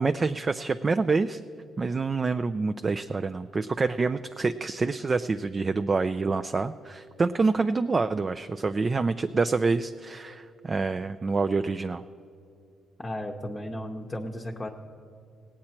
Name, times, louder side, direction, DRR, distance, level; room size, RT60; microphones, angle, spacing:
voice 1, 0.0-1.4 1.8-12.0, right 4 dB, 30° right, 10 dB, 0.3 m, -27 dB
voice 2, 13.0-14.7, left 1 dB, 20° left, 1 dB, 0.8 m, -34 dB
17.5 x 8.7 x 4.4 m, 2.5 s
cardioid pair, 90°, 0 cm